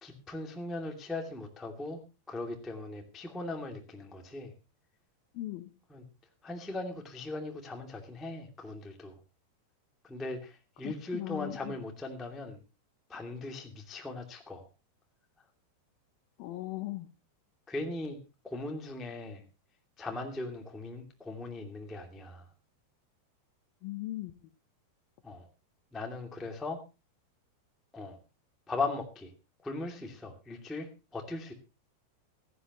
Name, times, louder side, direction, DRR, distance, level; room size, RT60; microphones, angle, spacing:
voice 1, 0.0-2.0 2.3-4.5 5.9-6.0 6.4-9.2 10.0-12.6 13.1-14.7 17.7-18.2 18.4-19.4 20.0-22.4 25.2-25.5 25.9-26.8 27.9-28.2 28.7-29.3 29.6-31.5, left 2 dB, ahead, 2 dB, 0.5 m, -39 dB
voice 2, 5.3-5.7 10.8-11.8 16.4-17.1 23.8-24.3, left 16 dB, 85° left, 9 dB, 2.0 m, -38 dB
16.5 x 14.0 x 3.0 m, 0.29 s
omnidirectional pair, 5.3 m